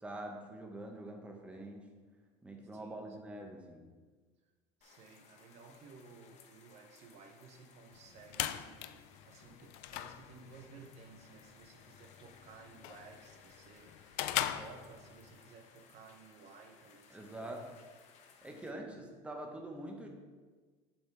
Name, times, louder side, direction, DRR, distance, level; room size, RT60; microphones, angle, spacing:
voice 1, 0.0-1.9 2.4-3.8 17.1-17.7 18.4-20.1, right 1 dB, 10° right, 1 dB, 1.1 m, -45 dB
voice 2, 2.7-3.2 3.4-3.5 4.8-14.0 14.4-17.8 18.4-19.1, right 4 dB, 50° right, 4 dB, 0.7 m, -56 dB
sound 1, 4.8-18.7, left 6 dB, 50° left, 1.0 m, -62 dB
sound 2, 7.9-15.4, left 13 dB, 75° left, 0.4 m, -41 dB
7.2 x 6.9 x 3.4 m, 1.4 s
supercardioid pair, 115°, 15 cm